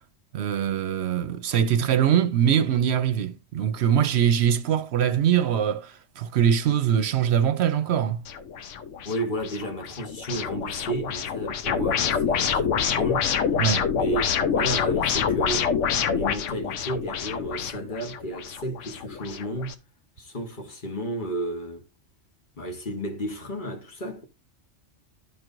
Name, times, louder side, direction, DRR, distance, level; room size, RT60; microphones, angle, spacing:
voice 1, 0.3-8.2 13.6-13.9, right 9 dB, 70° right, 0.9 m, -23 dB
sound 1, 8.3-19.7, left 7 dB, 90° left, 1.1 m, -27 dB
voice 2, 9.0-13.5 13.9-15.7 16.1-19.8 20.2-21.9 22.6-24.2, right 1 dB, 45° left, 1.3 m, -33 dB
12.5 x 4.6 x 2.5 m
omnidirectional pair, 1.2 m